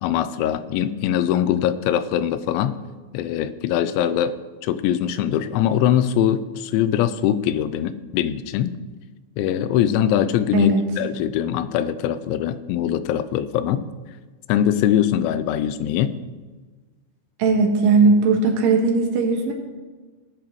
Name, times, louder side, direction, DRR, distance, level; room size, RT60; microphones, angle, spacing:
voice 1, 0.0-2.8 3.1-8.8 9.4-13.9 14.5-16.2, left 10 dB, 85° left, 13 dB, 2.9 m, -22 dB
voice 2, 17.4-19.5, right 4 dB, 85° right, 2 dB, 3.8 m, -18 dB
19.0 x 8.8 x 3.1 m, 1.3 s
omnidirectional pair, 5.2 m